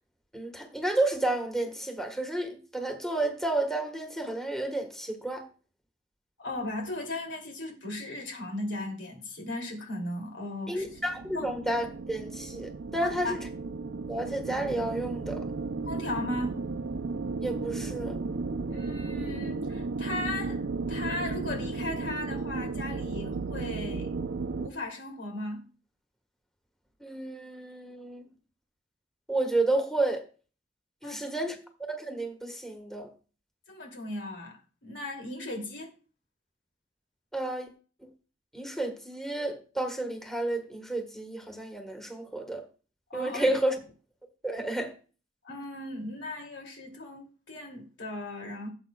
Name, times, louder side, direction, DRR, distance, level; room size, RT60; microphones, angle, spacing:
voice 1, 0.3-5.5 10.7-13.4 14.1-15.5 17.4-18.2 27.0-28.3 29.3-30.3 31.0-31.5 31.9-33.1 37.3-37.7 38.0-38.1 38.5-42.6 43.1-43.7 44.4-44.9, right 2 dB, ahead, 1.4 m, -31 dB
voice 2, 6.4-11.0 11.3-11.5 13.0-13.4 15.9-16.6 18.7-24.1 24.5-25.7 31.0-31.2 33.7-35.9 43.1-43.6 45.4-48.7, left 2 dB, 90° left, 2.7 m, -37 dB
sound 1, 10.8-24.7, right 4 dB, 80° right, 0.5 m, -34 dB
17.0 x 7.8 x 2.3 m
head